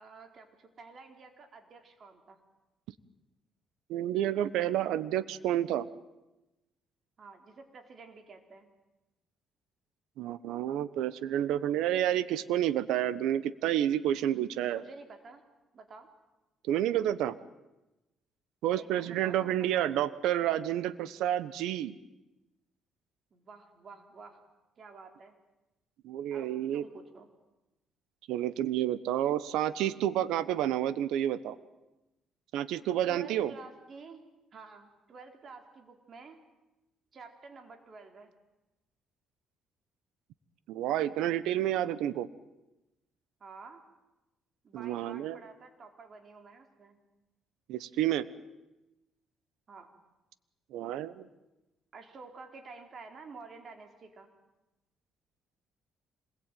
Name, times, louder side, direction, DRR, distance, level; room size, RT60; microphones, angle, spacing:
voice 1, 0.0-2.4 7.2-8.7 14.7-15.4 15.7-16.1 18.7-19.9 23.3-24.4 24.8-25.3 26.3-27.3 33.1-34.2 34.5-36.4 37.1-38.3 43.4-43.8 44.6-47.0 49.7-49.9 51.9-54.3, right 4 dB, 45° right, 5 dB, 4.3 m, -50 dB
voice 2, 3.9-5.9 10.2-14.8 16.7-17.3 18.6-21.9 26.0-26.8 28.3-31.6 32.5-33.5 40.7-42.3 44.7-45.4 47.7-48.3 50.7-51.2, right 11 dB, 85° right, 15 dB, 1.1 m, -30 dB
26.5 x 21.0 x 9.2 m, 1.0 s
cardioid pair, 105°, 0 cm